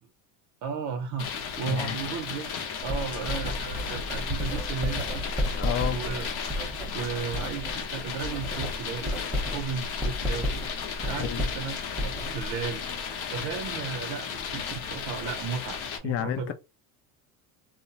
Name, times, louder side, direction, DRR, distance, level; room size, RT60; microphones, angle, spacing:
voice 1, 0.6-2.5 2.8-5.3 5.9-6.3 6.9-9.2 9.5-10.6 11.0-12.8 13.3-16.5, right 6 dB, 50° right, 0.5 m, -35 dB
sound 1, 1.2-16.0, left 6 dB, 70° left, 0.8 m, -35 dB
voice 2, 1.6-2.0 5.5-6.0 11.1-11.5 16.0-16.5, left 9 dB, 35° left, 0.4 m, -30 dB
Writing, 2.8-7.8 8.1-12.7, equal, 5° right, 0.8 m, -32 dB
2.7 x 2.0 x 2.7 m
supercardioid pair, 115°, 40 cm